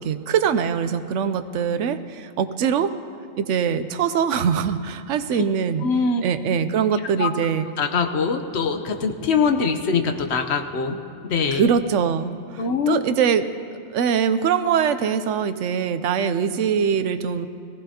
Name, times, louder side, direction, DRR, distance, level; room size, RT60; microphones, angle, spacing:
voice 1, 0.0-2.9 3.4-5.9 6.2-7.7 11.5-13.5 13.9-17.5, right 7 dB, 75° right, 11 dB, 0.9 m, -22 dB
voice 2, 5.8-6.3 7.2-7.3 7.8-11.0 11.3-11.7 12.6-13.0, left 5 dB, 60° left, 7 dB, 1.0 m, -22 dB
18.5 x 15.5 x 2.8 m, 2.5 s
omnidirectional pair, 1.4 m